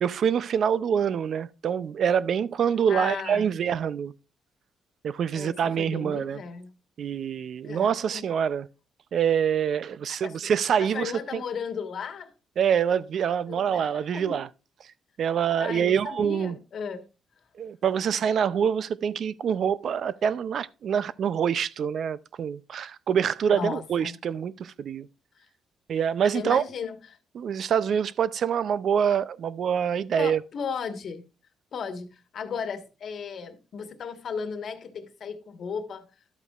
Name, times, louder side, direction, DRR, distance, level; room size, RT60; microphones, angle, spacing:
voice 1, 0.0-4.1 5.0-6.4 7.0-8.7 9.1-11.4 12.6-14.5 15.2-16.6 17.6-25.1 25.9-26.6 27.4-30.4, right 8 dB, 60° right, 0.5 m, -25 dB
voice 2, 2.9-3.5 5.3-6.7 7.6-8.2 10.2-10.5 10.8-12.3 13.5-14.4 15.6-17.1 23.5-24.2 25.4-25.5 26.3-27.2 30.2-31.2 31.7-36.1, left 6 dB, 60° left, 1.4 m, -35 dB
12.0 x 8.1 x 2.4 m
cardioid pair, 90°, 0 cm